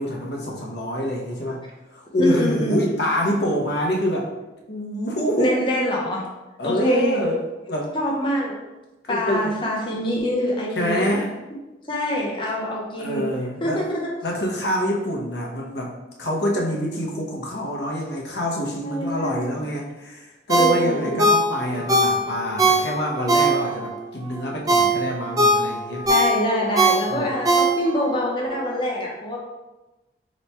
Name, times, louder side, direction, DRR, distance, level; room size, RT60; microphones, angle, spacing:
voice 1, 0.0-1.6 1.9-4.3 4.7-5.7 6.6-7.4 7.7-7.9 9.0-9.5 10.7-11.3 13.0-13.8 14.2-26.1 27.1-27.3, equal, 60° left, -1 dB, 0.7 m, -26 dB
voice 2, 2.2-2.8 5.4-6.2 6.6-7.2 7.9-8.6 9.1-11.1 11.9-13.3 13.6-14.1 18.8-19.5 20.5-21.4 26.1-29.4, equal, 25° left, -2 dB, 0.6 m, -25 dB
Ringtone, 20.5-23.9 24.4-28.1 28.5-28.6, right 2 dB, 20° right, 0.3 m, -20 dB
3.0 x 2.2 x 4.2 m, 1.1 s
head